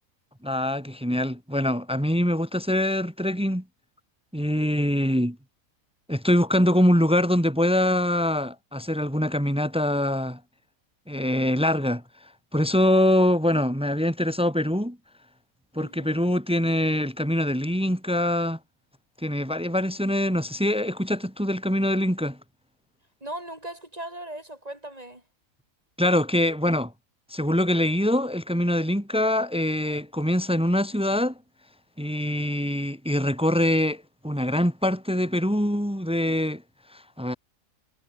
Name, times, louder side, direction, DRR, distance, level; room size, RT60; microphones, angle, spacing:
voice 1, 0.4-3.6 4.3-5.4 6.1-10.4 11.1-12.0 12.5-15.0 15.7-18.6 19.2-22.4 26.0-26.9 27.3-31.4 32.0-36.6 36.9-37.4, left 1 dB, 5° right, 2.0 m, -24 dB
voice 2, 15.8-16.3 23.2-25.2, right 1 dB, 25° right, 6.5 m, -38 dB
omnidirectional pair, 1.5 m